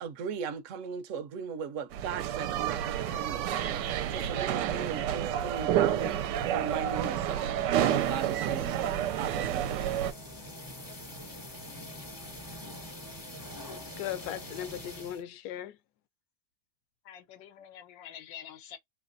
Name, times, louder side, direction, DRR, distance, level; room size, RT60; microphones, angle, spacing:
voice 1, 0.0-10.0, right 6 dB, 60° right, 0.9 m, -38 dB
sound 1, 1.9-10.1, right 11 dB, 75° right, 1.1 m, -30 dB
sound 2, 7.8-15.2, left 1 dB, 20° left, 0.6 m, -45 dB
voice 2, 13.7-15.8, left 11 dB, 70° left, 1.1 m, -38 dB
voice 3, 17.0-18.8, left 10 dB, 90° left, 1.4 m, -47 dB
3.2 x 2.9 x 2.5 m
omnidirectional pair, 1.9 m